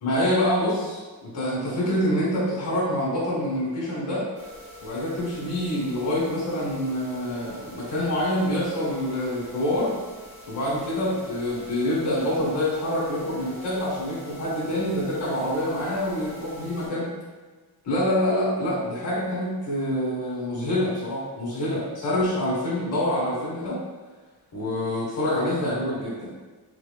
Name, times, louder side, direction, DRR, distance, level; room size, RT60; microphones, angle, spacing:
voice 1, 0.0-4.2 4.8-10.0 10.5-17.1 17.8-23.8 24.5-26.3, left 1 dB, 50° left, -7 dB, 1.3 m, -26 dB
sound 1, 4.3-16.9, equal, 55° right, 1.2 m, -45 dB
4.7 x 3.7 x 2.2 m, 1.3 s
wide cardioid pair, 165°, 40 cm